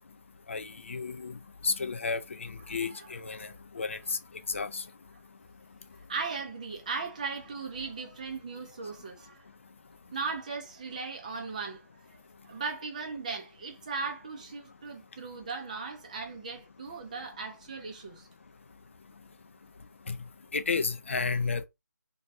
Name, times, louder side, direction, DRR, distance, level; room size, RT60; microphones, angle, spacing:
voice 1, 0.5-1.3 1.6-3.5 3.8-4.0 4.5-4.8 20.1-20.2 20.5-21.7, left 4 dB, 45° left, 0.3 m, -32 dB
voice 2, 2.7-3.1 3.4-3.6 6.1-9.4 10.1-18.3, right 4 dB, 25° right, 0.5 m, -38 dB
2.9 x 2.3 x 2.6 m
figure-of-eight pair, 150°, 10 cm